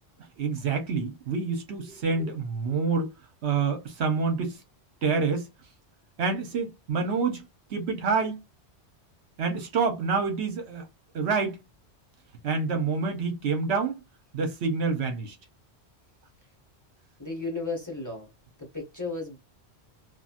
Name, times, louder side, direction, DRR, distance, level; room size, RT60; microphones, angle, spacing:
voice 1, 0.4-3.1 3.4-4.6 5.0-5.5 6.2-7.4 7.7-8.4 9.4-10.9 11.1-11.6 12.4-14.0 14.3-15.3, right 4 dB, 70° right, 1.0 m, -27 dB
voice 2, 1.9-2.3 17.2-18.3 18.6-19.4, left 3 dB, 15° left, 1.1 m, -35 dB
2.9 x 2.4 x 2.4 m
omnidirectional pair, 1.2 m